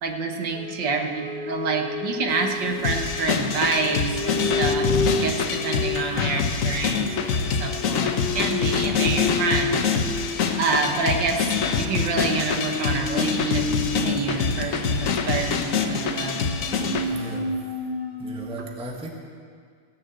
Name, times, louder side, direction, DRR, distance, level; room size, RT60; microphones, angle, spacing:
voice 1, 0.0-4.9 5.2-7.1 7.4-9.8 10.5-11.5 11.8-16.5, right 4 dB, 65° right, 3 dB, 1.8 m, -27 dB
sound 1, 0.5-18.5, left 3 dB, 35° left, 1.2 m, -31 dB
Water, 2.3-17.4, left 1 dB, 15° left, 0.4 m, -44 dB
sound 2, 2.8-17.1, left 6 dB, 55° left, 1.0 m, -25 dB
voice 2, 17.0-17.5 18.2-19.1, right 1 dB, 5° right, 0 dB, 1.0 m, -36 dB
16.5 x 7.0 x 7.9 m, 2.1 s
omnidirectional pair, 2.2 m